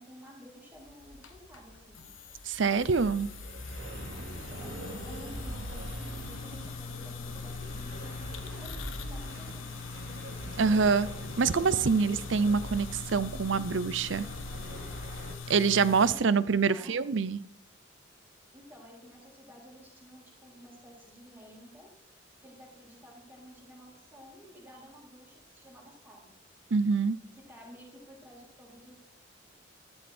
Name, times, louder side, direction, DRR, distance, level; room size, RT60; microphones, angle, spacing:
voice 1, 0.0-2.0 4.5-4.8 5.0-9.8 15.9-17.3 18.5-21.9 22.4-26.3 27.3-29.0, equal, 10° right, -2 dB, 3.9 m, -52 dB
sound 1, 0.7-16.1, left 5 dB, 85° left, 1.3 m, -42 dB
voice 2, 2.5-3.3 10.6-11.1 11.4-14.2 15.5-17.4 26.7-27.2, right 5 dB, 70° right, 17 dB, 0.6 m, -25 dB
sound 2, 2.7-15.4, right 1 dB, 85° right, 2.7 m, -42 dB
13.5 x 13.0 x 4.4 m, 0.76 s
head